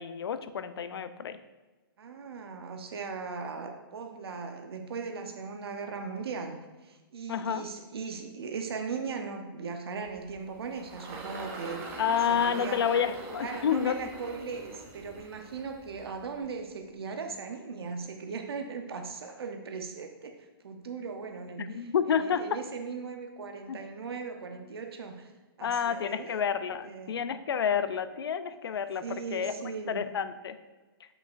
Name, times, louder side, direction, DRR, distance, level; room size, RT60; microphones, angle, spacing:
voice 1, 0.0-1.4 7.3-7.7 12.0-14.0 21.6-22.6 23.7-23.8 25.6-29.5 29.9-30.6, left 7 dB, 80° left, 12 dB, 0.5 m, -29 dB
voice 2, 2.0-11.9 12.3-12.9 13.4-20.3 20.6-25.3 25.6-26.4 26.8-27.2 29.0-30.1, right 5 dB, 85° right, 4 dB, 0.8 m, -38 dB
Engine, 10.1-16.7, right 3 dB, 20° right, 0.7 m, -43 dB
8.1 x 5.5 x 2.5 m, 1.2 s
hypercardioid pair, 160°, 13 cm